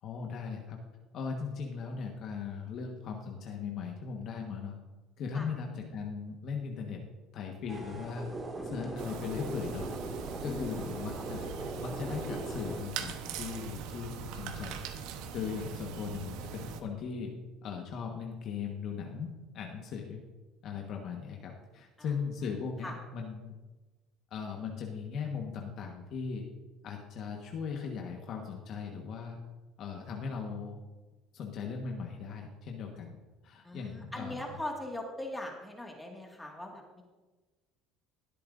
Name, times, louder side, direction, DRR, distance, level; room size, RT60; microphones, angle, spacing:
voice 1, 0.0-0.8 1.1-4.8 5.2-7.0 7.3-8.3 8.6-9.9 10.4-11.5 11.8-14.8 15.3-17.3 17.6-20.2 20.6-23.6 24.3-26.5 26.8-29.4 29.8-30.8 31.3-33.1 33.4-34.4, left 6 dB, 55° left, 1 dB, 1.4 m, -38 dB
sound 1, 7.7-12.8, right 2 dB, 25° right, 2.1 m, -40 dB
sound 2, 9.0-16.8, right 7 dB, 75° right, 1.0 m, -41 dB
voice 2, 10.1-10.8 22.0-22.1 22.8-22.9 33.6-37.0, left 1 dB, 10° left, 0 dB, 2.0 m, -41 dB
19.5 x 8.5 x 2.6 m, 1.2 s
supercardioid pair, 100°, 0 cm